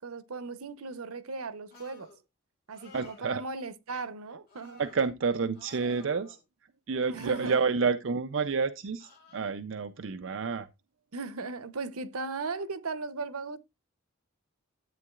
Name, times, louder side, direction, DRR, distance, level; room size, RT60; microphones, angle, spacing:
voice 1, 0.0-2.1 2.7-4.8 6.9-7.8 11.1-13.6, right 3 dB, 85° right, 0.8 m, -37 dB
sound 1, 1.7-2.2 2.7-3.3 4.5-5.0 5.5-6.4 7.1-7.6 9.0-9.5, left 2 dB, 45° left, 3.0 m, -52 dB
voice 2, 2.9-3.4 4.8-6.4 6.9-10.7, right 5 dB, 60° right, 0.5 m, -29 dB
12.5 x 8.4 x 2.4 m
head